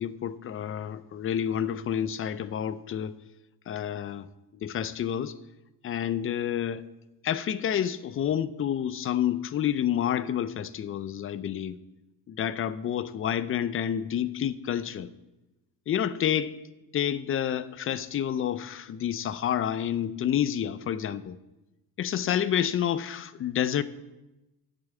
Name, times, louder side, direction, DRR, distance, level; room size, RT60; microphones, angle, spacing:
voice 1, 0.0-3.2 3.7-4.3 4.6-5.3 5.8-6.8 7.2-11.8 12.3-15.1 15.9-16.5 16.9-21.4 22.0-23.8, left 9 dB, 35° left, 15 dB, 0.5 m, -29 dB
9.0 x 6.9 x 8.2 m, 1.0 s
cardioid pair, 130°, 40 cm